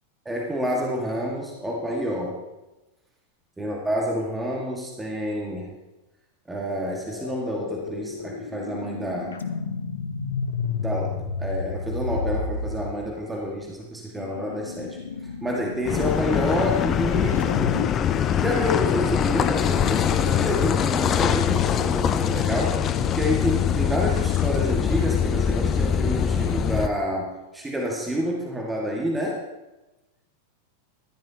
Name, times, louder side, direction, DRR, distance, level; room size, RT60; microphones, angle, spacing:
voice 1, 0.2-2.4 3.6-5.7 6.5-9.4 10.8-17.5 18.4-29.4, equal, 10° right, -2 dB, 1.8 m, -28 dB
sound 1, 7.1-13.0 14.2-17.9, left 4 dB, 70° left, 0.8 m, -32 dB
Car passing by / Idling / Accelerating revving vroom, 15.8-26.9, left 8 dB, 30° left, 0.6 m, -23 dB
14.5 x 12.0 x 2.9 m, 1.0 s
figure-of-eight pair, 90°, 0 cm